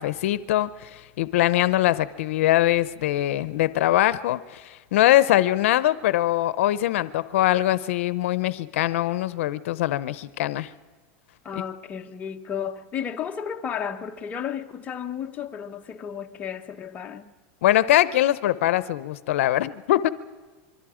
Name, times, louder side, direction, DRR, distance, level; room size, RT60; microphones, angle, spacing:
voice 1, 0.0-10.7 17.6-20.1, left 14 dB, 80° left, 0.6 m, -22 dB
voice 2, 11.4-17.3, left 8 dB, 20° left, 0.9 m, -33 dB
26.0 x 23.0 x 5.0 m
supercardioid pair, 155°, 7 cm